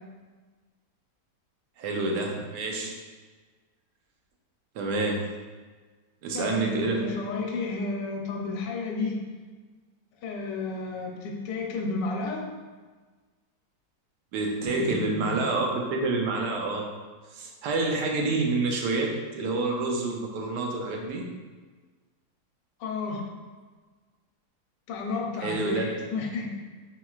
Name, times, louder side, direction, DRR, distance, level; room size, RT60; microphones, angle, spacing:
voice 1, 1.8-3.0 4.7-5.4 6.2-7.1 14.3-16.9 17.3-21.3 25.4-25.9, right 3 dB, 80° right, 1 dB, 1.2 m, -28 dB
voice 2, 6.3-9.2 10.2-12.5 14.7-15.4 22.8-23.2 24.9-26.5, left 3 dB, 85° left, 1 dB, 1.3 m, -32 dB
4.5 x 3.8 x 2.4 m, 1.4 s
omnidirectional pair, 1.8 m